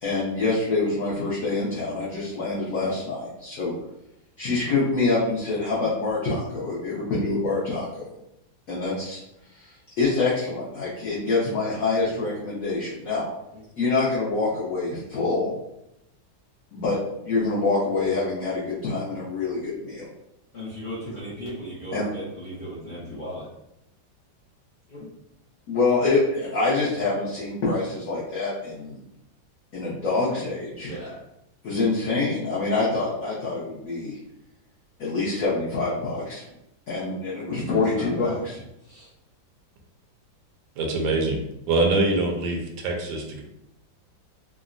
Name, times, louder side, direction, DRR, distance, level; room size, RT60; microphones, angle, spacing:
voice 1, 0.0-3.7 4.4-8.1 8.7-9.2 10.0-13.3 13.8-15.6 16.7-20.1 21.9-22.1 25.7-29.0 29.7-30.9 31.6-34.2 35.0-36.4 36.9-38.6, left 3 dB, 65° left, -7 dB, 0.9 m, -26 dB
voice 2, 20.5-23.4 24.9-25.1 30.8-31.2 37.7-38.4 38.9-39.1, equal, 80° left, -9 dB, 0.4 m, -36 dB
voice 3, 40.8-41.4 41.7-43.4, right 2 dB, 85° right, 2 dB, 1.3 m, -24 dB
3.6 x 2.0 x 2.4 m, 0.84 s
omnidirectional pair, 2.1 m